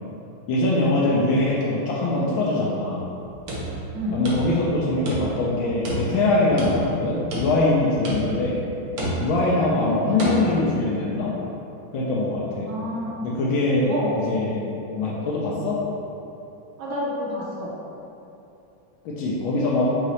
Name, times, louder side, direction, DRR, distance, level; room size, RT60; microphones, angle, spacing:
voice 1, 0.5-3.0 4.1-8.6 9.2-11.3 11.9-12.7 13.2-14.6 14.9-15.8 19.0-19.8, left 2 dB, 80° left, -5 dB, 1.3 m, -23 dB
Plastic Drum Thuds Various, 3.4-4.8 5.1-5.5 5.8-7.0 7.3-7.8 8.0-8.5 9.0-9.5 10.2-10.4, right 1 dB, 60° right, 1.1 m, -29 dB
voice 2, 12.7-13.2 13.9-14.1 16.8-17.7, equal, 90° right, -6 dB, 1.7 m, -29 dB
5.6 x 2.8 x 3.1 m, 2.8 s
omnidirectional pair, 2.2 m